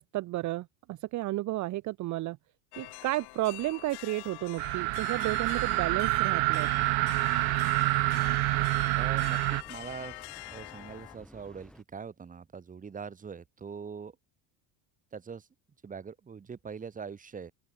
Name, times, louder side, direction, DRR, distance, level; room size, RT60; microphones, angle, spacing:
voice 1, 0.0-2.4 2.8-6.7, right 17 dB, 45° right, 0.8 m, -32 dB
sound 1, 2.7-11.2, left 23 dB, 65° left, 3.3 m, -45 dB
sound 2, 4.6-9.6, right 34 dB, 75° right, 1.1 m, -27 dB
sound 3, 5.1-11.8, left 1 dB, ahead, 2.1 m, -54 dB
voice 2, 8.9-10.2 10.5-14.2 15.1-15.5 15.8-17.5, right 6 dB, 20° right, 1.9 m, -42 dB
open air
cardioid pair, 145°, 42 cm